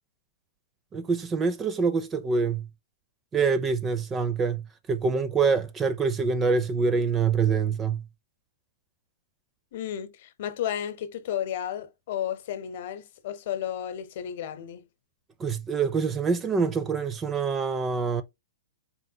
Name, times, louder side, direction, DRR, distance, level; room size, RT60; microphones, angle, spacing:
voice 1, 0.9-2.7 3.3-8.0 15.4-18.2, right 5 dB, 20° right, 0.5 m, -25 dB
voice 2, 9.7-14.9, left 10 dB, 50° left, 0.9 m, -33 dB
4.2 x 3.7 x 2.8 m
figure-of-eight pair, 110°, 0 cm